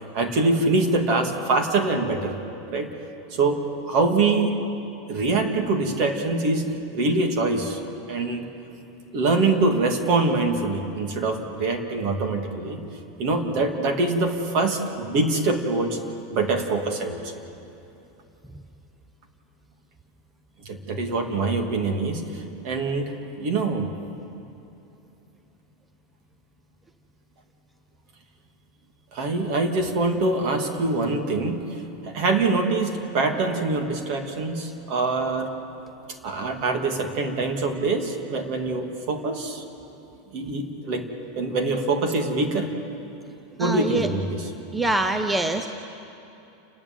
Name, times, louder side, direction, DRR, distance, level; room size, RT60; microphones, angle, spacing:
voice 1, 0.1-2.3 2.7-2.9 3.3-3.6 3.9-4.5 5.1-6.7 6.9-7.8 8.1-8.5 9.1-12.8 13.2-16.0 16.3-17.4 20.6-23.9 29.1-31.6 32.0-35.5 36.2-39.6 40.3-41.0 41.4-42.7 43.6-44.5, right 3 dB, 45° right, 4 dB, 2.5 m, -24 dB
voice 2, 43.6-44.1 44.7-45.7, right 2 dB, 5° right, 7 dB, 0.7 m, -24 dB
29.5 x 10.5 x 9.1 m, 2.9 s
supercardioid pair, 150°, 0 cm